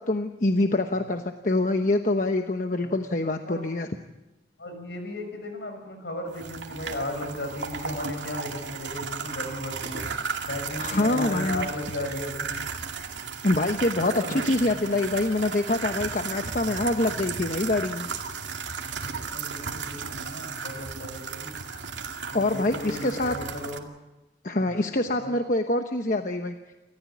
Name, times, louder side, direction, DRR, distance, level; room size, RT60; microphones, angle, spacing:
voice 1, 0.0-3.9 10.8-11.7 13.4-18.1 22.3-23.3 24.4-26.5, left 2 dB, 45° left, 6 dB, 1.0 m, -25 dB
voice 2, 4.6-10.1 10.4-12.6 14.0-15.1 19.3-21.6 22.3-23.9 24.6-24.9 25.2-25.3, left 1 dB, 70° left, 5 dB, 6.2 m, -36 dB
sound 1, 6.3-23.8, right 5 dB, 85° right, 2.3 m, -35 dB
29.0 x 14.5 x 8.5 m, 1.1 s
head